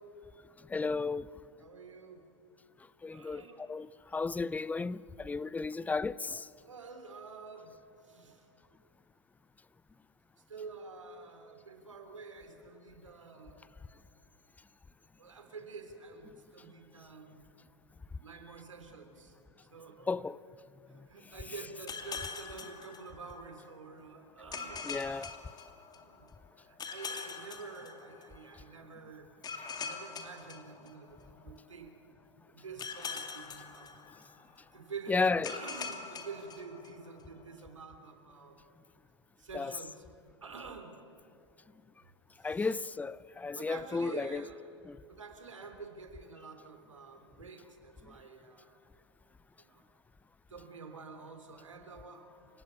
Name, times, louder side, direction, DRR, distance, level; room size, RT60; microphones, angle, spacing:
voice 1, 0.7-1.3 3.0-6.5 20.1-20.4 24.8-25.3 35.1-35.6 39.5-39.8 42.4-44.5 44.8-45.0, left 4 dB, 10° left, 0.5 m, -33 dB
voice 2, 1.6-2.3 3.1-3.6 6.6-7.7 8.0-8.5 10.5-13.7 15.2-17.5 18.2-19.3 19.7-20.1 20.9-24.8 26.0-26.3 26.6-29.3 29.8-31.9 32.5-33.9 34.7-38.6 39.4-40.0 40.4-40.9 42.4-42.7 43.5-44.6 45.0-48.8 49.6-49.8 50.5-52.3, right 4 dB, 85° right, 3.4 m, -48 dB
sound 1, 21.9-23.6 24.5-26.3 26.8-28.5 29.4-31.4 32.8-34.6 35.4-37.2, left 5 dB, 25° left, 2.4 m, -43 dB
28.0 x 16.5 x 9.8 m
hypercardioid pair, 95°, 16 cm